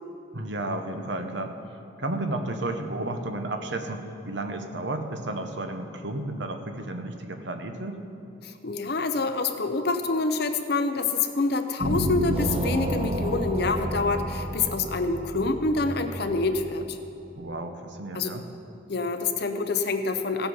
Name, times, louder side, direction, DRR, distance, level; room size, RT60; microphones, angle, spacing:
voice 1, 0.3-1.6 2.0-8.0 17.3-18.4, right 2 dB, 65° right, 6 dB, 0.9 m, -32 dB
voice 2, 8.4-17.0 18.1-18.3 18.9-20.5, left 3 dB, 55° left, 7 dB, 0.7 m, -27 dB
sound 1, 11.8-17.0, equal, 30° right, 0.7 m, -30 dB
16.0 x 8.0 x 5.5 m, 2.6 s
head